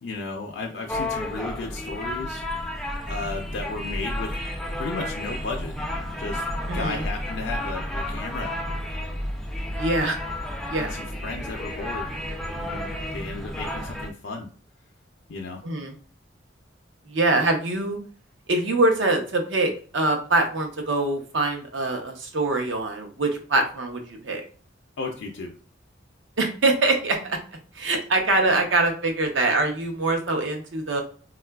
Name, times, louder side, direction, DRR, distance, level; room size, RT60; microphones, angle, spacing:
voice 1, 0.0-2.4 3.1-4.3 4.8-5.7 6.2-6.4 6.7-8.5 10.8-12.2 12.5-14.5 15.3-15.6 25.0-25.5, left 3 dB, 70° left, 2 dB, 0.4 m, -34 dB
bangalore predigt, 0.9-14.1, left 1 dB, ahead, 0.3 m, -31 dB
voice 2, 6.7-7.0 9.8-10.2 10.7-10.9 15.6-15.9 17.1-18.0 18.5-24.4 26.4-27.4 27.8-31.0, right 2 dB, 80° right, 3 dB, 0.7 m, -24 dB
3.7 x 2.3 x 2.2 m, 0.41 s
head